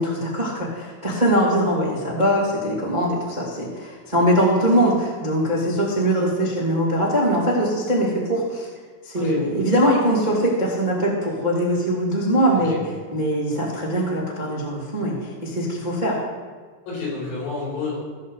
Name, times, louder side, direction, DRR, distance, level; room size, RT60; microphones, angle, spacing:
voice 1, 0.0-8.7 9.0-12.8 13.1-16.2, equal, 30° right, -7 dB, 0.7 m, -22 dB
voice 2, 12.5-12.8 16.9-18.0, left 4 dB, 85° left, -6 dB, 7.0 m, -30 dB
17.5 x 7.3 x 4.0 m, 1.5 s
omnidirectional pair, 5.9 m